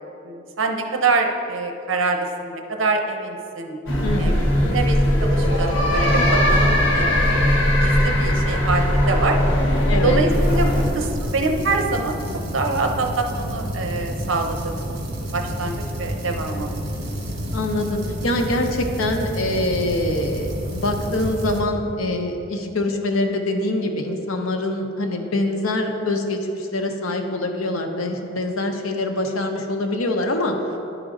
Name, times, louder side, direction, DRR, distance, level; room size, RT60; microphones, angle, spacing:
voice 1, 0.2-3.8 4.2-4.4 4.6-7.4 7.8-9.4 10.0-12.2 12.5-15.0 15.3-16.7, right 3 dB, 75° right, 4 dB, 0.7 m, -25 dB
sound 1, 3.9-10.9, equal, 70° left, 1.2 m, -19 dB
voice 2, 4.0-4.8 9.9-10.2 17.5-30.6, left 2 dB, 90° left, 4 dB, 0.8 m, -24 dB
sound 2, 10.3-21.6, equal, 55° right, 1.3 m, -30 dB
11.0 x 5.0 x 3.8 m, 2.8 s
head